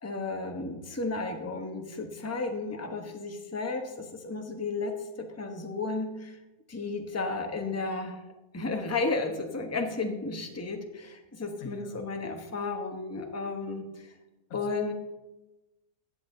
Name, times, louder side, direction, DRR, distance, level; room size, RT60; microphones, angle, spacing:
voice 1, 0.0-6.4 6.7-8.2 8.5-14.1 14.5-14.9, left 3 dB, 10° left, 4 dB, 0.9 m, -33 dB
voice 2, 11.6-12.0 14.5-14.9, left 5 dB, 80° left, 7 dB, 1.4 m, -46 dB
14.0 x 8.4 x 3.8 m, 1.0 s
omnidirectional pair, 1.4 m